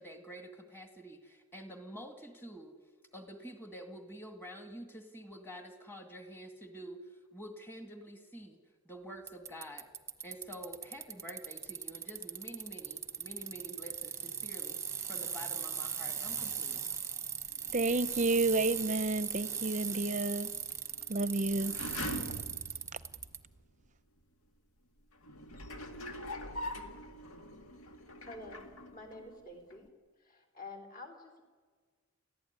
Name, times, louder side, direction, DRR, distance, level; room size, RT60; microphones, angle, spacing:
voice 1, 0.0-2.7 3.1-7.0 7.3-8.6 8.9-9.9 10.2-14.8 15.1-16.8, equal, 10° left, 2.3 m, -48 dB
Bicycle, 9.3-23.4, right 7 dB, 15° right, 1.0 m, -39 dB
sound 1, 17.5-23.6 24.2-24.3 25.1-29.4 29.7-29.8, left 1 dB, 85° left, 2.1 m, -45 dB
voice 2, 17.7-20.5 21.1-21.8, right 2 dB, 35° right, 0.7 m, -30 dB
voice 3, 28.2-28.6 28.9-29.9 30.2-31.4, left 2 dB, 40° left, 4.0 m, -48 dB
29.5 x 15.0 x 9.6 m
head